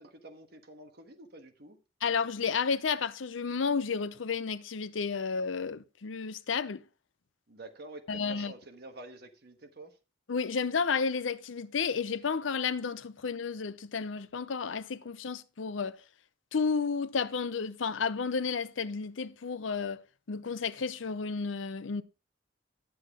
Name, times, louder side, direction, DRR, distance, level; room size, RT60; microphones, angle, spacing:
voice 1, 0.0-1.8 7.5-10.0, right 2 dB, 55° right, 1.4 m, -48 dB
voice 2, 2.0-6.8 8.1-8.5 10.3-16.0 16.5-20.0 20.3-22.0, left 5 dB, 85° left, 0.6 m, -32 dB
10.5 x 7.8 x 3.6 m
head